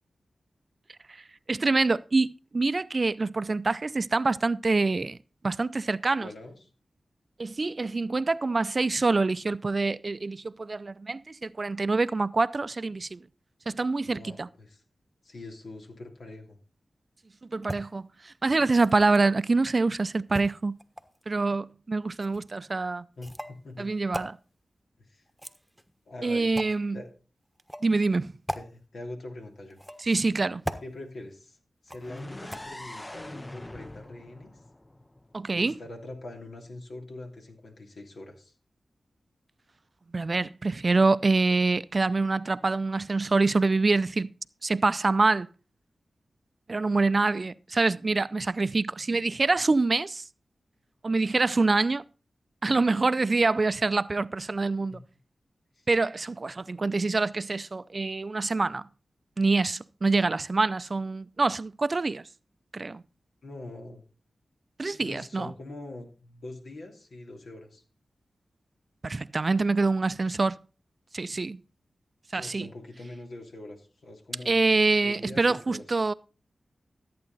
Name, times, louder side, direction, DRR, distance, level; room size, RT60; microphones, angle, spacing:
voice 1, 1.5-5.2 5.4-6.3 7.4-13.2 13.7-14.5 17.5-20.8 21.3-23.1 23.8-24.4 26.2-27.0 27.8-28.3 30.0-30.6 35.3-35.8 40.1-44.3 44.6-45.5 46.7-50.2 51.0-52.0 52.6-55.0 55.9-58.8 59.4-62.2 62.7-63.0 64.8-65.5 69.0-70.6 71.1-71.6 72.3-72.7 74.5-76.1, right 3 dB, 50° right, 0.5 m, -25 dB
voice 2, 6.2-6.6 14.0-14.8 15.2-16.6 23.2-23.9 25.0-25.2 26.1-26.5 26.9-27.1 28.5-29.8 30.8-31.6 31.8-34.5 35.5-38.5 54.6-55.0 55.7-55.9 63.4-64.0 64.9-67.8 72.4-74.6 75.0-75.8, left 2 dB, 75° left, 2.9 m, -43 dB
sound 1, 17.6-17.8 18.6-19.3 20.3-21.2 22.2-22.4 23.2-23.6 24.1-24.3 25.3-25.9 26.5-26.8 27.6-27.9 28.5-28.6 29.7-30.2 30.6-30.9 31.9-32.2 32.5-32.6, equal, ahead, 1.2 m, -37 dB
sound 2, 32.0-35.9, left 1 dB, 20° left, 0.6 m, -43 dB
14.0 x 8.5 x 4.0 m
cardioid pair, 45°, 0 cm